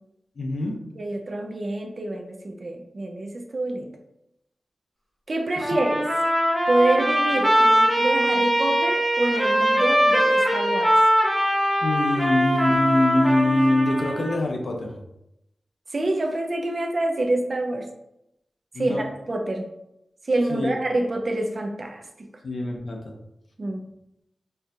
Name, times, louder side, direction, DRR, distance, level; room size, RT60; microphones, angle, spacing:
voice 1, 0.4-0.8 5.6-5.8 11.8-15.0 18.7-19.1 20.5-20.7 22.4-23.1, left 1 dB, 55° left, 1 dB, 0.6 m, -23 dB
voice 2, 1.0-3.9 5.3-6.1 6.7-10.9 15.9-17.9 18.8-19.7 20.2-22.3 23.6-23.8, right 2 dB, 40° right, 3 dB, 0.4 m, -26 dB
Trumpet, 5.6-14.4, equal, 5° right, 1.0 m, -21 dB
4.3 x 2.3 x 2.6 m, 0.83 s
wide cardioid pair, 140°, 0 cm